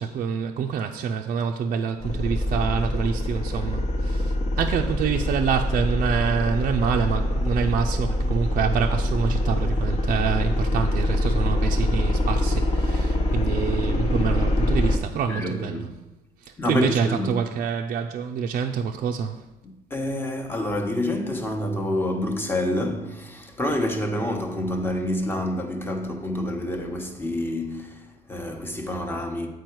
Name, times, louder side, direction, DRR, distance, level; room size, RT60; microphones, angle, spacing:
voice 1, 0.0-15.8 16.4-19.4, right 6 dB, 55° right, 0.4 m, -26 dB
sound 1, 2.0-15.0, left 1 dB, 40° left, 1.0 m, -24 dB
voice 2, 15.3-15.9 16.6-17.4 19.6-29.5, left 1 dB, 10° left, 1.0 m, -28 dB
7.7 x 4.7 x 4.5 m
cardioid pair, 110°, 17 cm